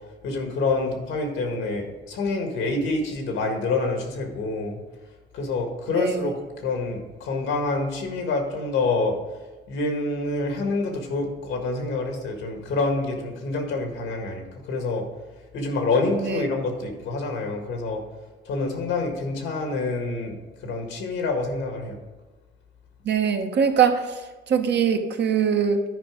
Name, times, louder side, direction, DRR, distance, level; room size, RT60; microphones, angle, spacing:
voice 1, 0.2-4.8 5.3-6.4 6.6-9.2 9.7-15.0 15.5-18.0 18.4-20.4 20.6-22.0, left 3 dB, 90° left, 3 dB, 1.7 m, -27 dB
voice 2, 5.9-6.3 16.2-16.4 23.0-24.2 24.5-25.8, right 7 dB, 60° right, 6 dB, 0.9 m, -22 dB
10.5 x 4.9 x 4.9 m, 1.2 s
cardioid pair, 90°, 20 cm